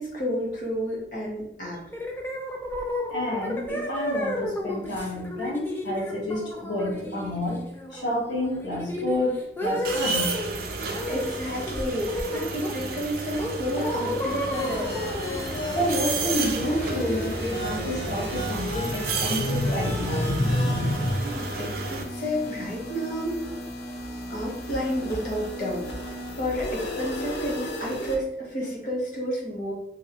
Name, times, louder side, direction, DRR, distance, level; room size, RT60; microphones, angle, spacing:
voice 1, 0.0-1.8 11.0-15.0 21.2-23.5 24.3-29.7, equal, 45° left, -3 dB, 0.9 m, -31 dB
sound 1, 1.9-10.5 10.9-11.4 11.7-12.9 13.4-17.1, left 1 dB, 10° left, 0.4 m, -33 dB
voice 2, 3.1-7.6 7.9-10.4 15.7-21.1, left 1 dB, 90° left, -5 dB, 1.2 m, -28 dB
sound 2, 9.8-22.0, right 3 dB, 55° right, 0.4 m, -32 dB
sound 3, 14.5-28.2, left 1 dB, 70° left, 0.6 m, -35 dB
2.8 x 2.7 x 2.8 m, 0.80 s
head